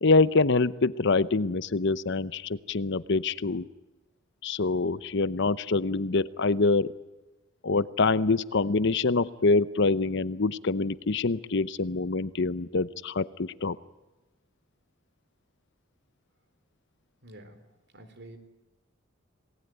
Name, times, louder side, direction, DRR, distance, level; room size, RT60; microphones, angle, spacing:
voice 1, 0.0-3.7 4.4-6.9 7.6-13.8, left 3 dB, 60° left, 16 dB, 0.8 m, -25 dB
voice 2, 17.2-18.4, right 1 dB, 60° right, 9 dB, 3.8 m, -49 dB
27.5 x 19.0 x 9.3 m, 1.1 s
head